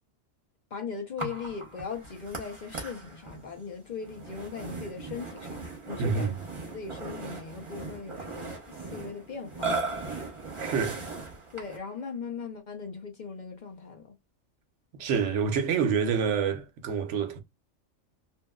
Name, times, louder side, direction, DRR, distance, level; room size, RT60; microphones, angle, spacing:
voice 1, 0.7-6.3 6.7-9.8 11.5-14.1, left 5 dB, 45° left, 0.7 m, -39 dB
Burping eructation, 1.2-11.9, right 3 dB, 25° right, 0.9 m, -38 dB
voice 2, 6.0-6.4 10.6-11.0 15.0-17.4, right 6 dB, 70° right, 1.0 m, -27 dB
2.9 x 2.7 x 2.2 m
omnidirectional pair, 1.3 m